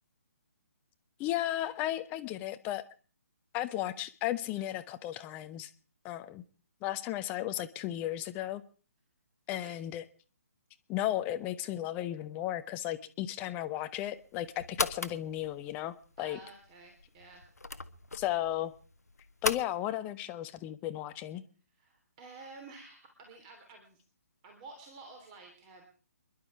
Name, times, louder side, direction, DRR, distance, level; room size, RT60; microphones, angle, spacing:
voice 1, 1.2-2.8 3.5-5.7 6.0-6.4 6.8-8.6 9.5-10.0 10.9-16.4 18.1-18.7 19.4-21.4, left 13 dB, 20° left, 10 dB, 0.8 m, -34 dB
sound 1, 14.0-19.6, left 3 dB, 80° left, 1.1 m, -39 dB
voice 2, 16.2-17.5 21.7-24.0 24.4-25.8, right 3 dB, 30° right, 4 dB, 3.1 m, -51 dB
27.0 x 11.5 x 4.7 m, 0.40 s
figure-of-eight pair, 140°, 9 cm